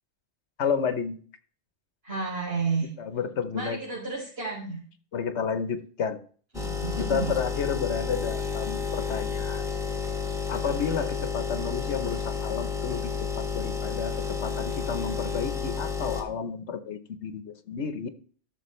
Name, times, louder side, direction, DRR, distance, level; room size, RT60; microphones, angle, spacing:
voice 1, 0.6-1.2 3.0-3.8 5.1-6.2 7.0-9.7 10.5-18.1, left 6 dB, 90° left, 11 dB, 1.2 m, -31 dB
voice 2, 2.0-2.9 3.5-4.8 6.5-7.3 10.6-11.0, right 4 dB, 65° right, -6 dB, 3.7 m, -32 dB
sound 1, 6.5-16.2, left 5 dB, 5° right, 1.4 m, -31 dB
14.0 x 6.3 x 3.1 m, 0.43 s
omnidirectional pair, 1.1 m